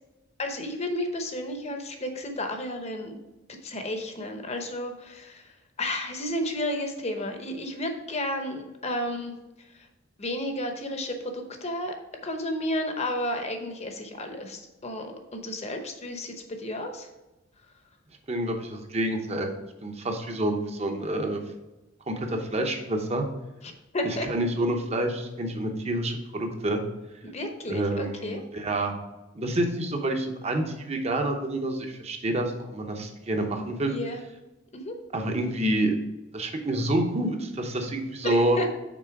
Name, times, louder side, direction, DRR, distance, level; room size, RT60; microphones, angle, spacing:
voice 1, 0.4-3.2 3.6-9.9 10.2-17.1 23.6-24.3 27.2-28.4 33.9-34.2 34.7-34.9 38.2-38.7, left 1 dB, 35° left, 5 dB, 0.8 m, -32 dB
voice 2, 18.3-19.5 19.8-21.4 22.1-23.2 24.0-26.8 27.7-29.0 29.3-33.9 35.1-35.9 36.3-38.6, right 1 dB, 35° right, 4 dB, 0.8 m, -28 dB
6.0 x 4.3 x 4.6 m, 1.0 s
head